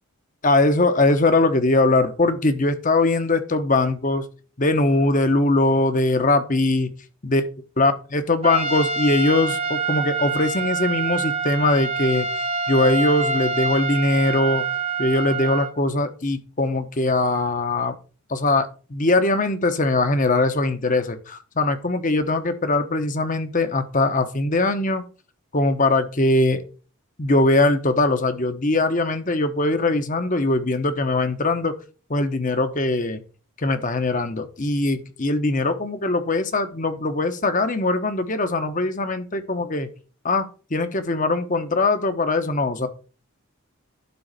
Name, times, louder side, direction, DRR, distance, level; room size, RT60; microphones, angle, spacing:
voice 1, 0.4-4.2 4.6-6.9 7.2-7.4 7.8-12.3 12.7-14.7 15.0-17.9 18.3-25.0 25.5-26.6 27.2-31.8 32.1-33.2 33.6-39.9 40.2-42.9, left 2 dB, 35° left, 9 dB, 1.1 m, -21 dB
Trumpet, 8.4-15.8, right 4 dB, 30° right, 0.9 m, -26 dB
11.5 x 3.9 x 6.6 m, 0.37 s
head